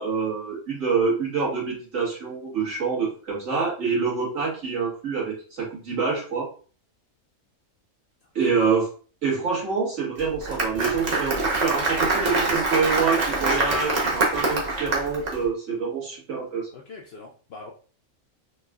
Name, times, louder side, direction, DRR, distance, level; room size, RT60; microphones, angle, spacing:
voice 1, 0.0-6.5 8.4-8.9 9.2-16.7, right 5 dB, 70° right, -5 dB, 1.8 m, -26 dB
Applause, 10.2-15.3, right 2 dB, 40° right, 0.7 m, -24 dB
voice 2, 16.7-17.7, left 4 dB, 65° left, 1 dB, 0.6 m, -41 dB
4.1 x 2.2 x 2.3 m, 0.39 s
omnidirectional pair, 1.4 m